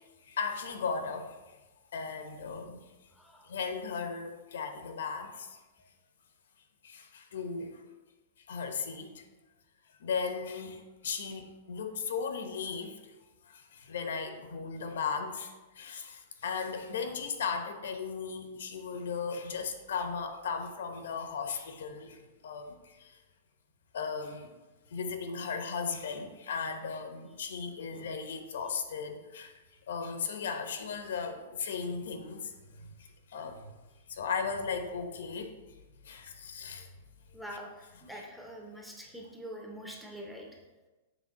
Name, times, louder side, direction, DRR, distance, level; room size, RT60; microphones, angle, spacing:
voice 1, 0.0-1.4 1.9-2.8 3.4-5.6 6.8-7.8 8.5-9.2 10.0-13.0 13.4-23.2 23.9-24.5 24.9-29.6 29.9-33.7 34.1-35.5 36.0-36.9, left 5 dB, 70° left, 6 dB, 0.9 m, -36 dB
voice 2, 37.3-40.5, equal, ahead, -1 dB, 0.6 m, -44 dB
7.2 x 3.4 x 5.7 m, 1.1 s
supercardioid pair, 180°, 0 cm